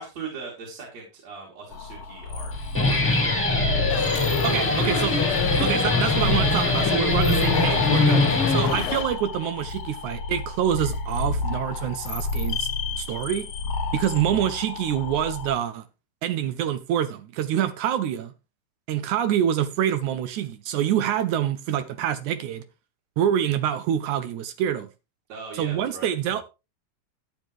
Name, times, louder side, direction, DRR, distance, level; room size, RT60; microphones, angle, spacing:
voice 1, 0.0-6.0 6.7-7.5 8.1-8.5 25.3-26.1, right 4 dB, 50° right, 3.8 m, -39 dB
sound 1, 1.7-15.5, left 3 dB, 55° left, 2.1 m, -31 dB
Guitar, 2.5-9.1, left 2 dB, 5° left, 1.5 m, -23 dB
sound 2, 3.9-9.0, left 12 dB, 85° left, 2.4 m, -31 dB
voice 2, 4.4-5.2 5.6-8.2 8.5-12.7 13.0-13.5 13.9-15.8 16.2-18.3 18.9-22.6 23.2-24.9 25.6-26.4, right 10 dB, 75° right, 1.9 m, -26 dB
12.0 x 9.3 x 3.1 m
omnidirectional pair, 3.9 m